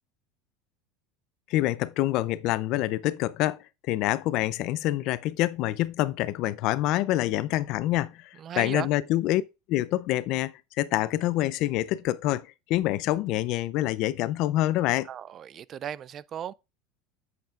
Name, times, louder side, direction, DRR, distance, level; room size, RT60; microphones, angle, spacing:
voice 1, 1.5-9.4 9.7-15.1, left 15 dB, 50° left, 0.5 m, -26 dB
voice 2, 8.4-8.9 15.1-16.5, right 9 dB, 30° right, 0.3 m, -36 dB
8.8 x 7.9 x 2.4 m
supercardioid pair, 160°, 0 cm